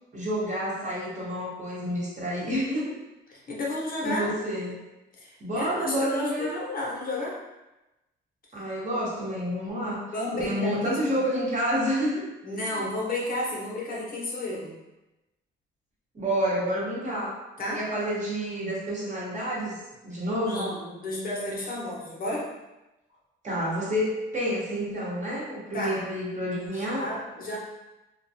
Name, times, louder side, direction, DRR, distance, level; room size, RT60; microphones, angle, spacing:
voice 1, 0.1-2.9 4.0-4.7 5.4-6.6 8.5-12.3 12.7-12.8 16.1-17.3 17.7-19.8 20.0-20.6 23.4-27.0, equal, 35° right, -6 dB, 0.9 m, -29 dB
voice 2, 3.3-4.3 5.2-7.4 10.1-11.2 12.4-14.7 17.6-17.8 20.5-22.5 25.7-26.0 26.7-27.6, left 1 dB, 45° left, -4 dB, 0.7 m, -32 dB
2.3 x 2.2 x 2.7 m, 1.0 s
cardioid pair, 90°, 20 cm